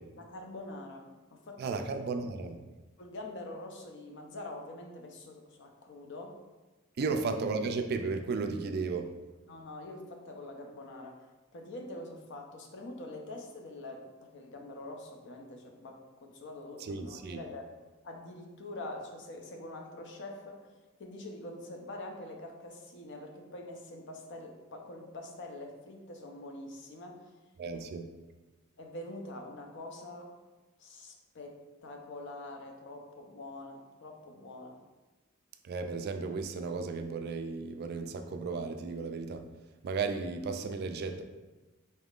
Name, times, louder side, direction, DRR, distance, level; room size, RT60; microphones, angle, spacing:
voice 1, 0.2-1.8 3.0-6.4 7.0-7.2 9.5-11.2 11.5-17.7 18.0-20.6 21.0-27.3 27.7-27.8 28.8-30.3 30.8-34.8, left 2 dB, 60° left, 3 dB, 0.6 m, -45 dB
voice 2, 1.6-2.6 7.0-9.1 16.8-17.4 27.6-28.1 35.6-39.4 39.8-41.2, right 4 dB, 50° right, 7 dB, 0.3 m, -34 dB
4.2 x 3.5 x 2.4 m, 1.2 s
head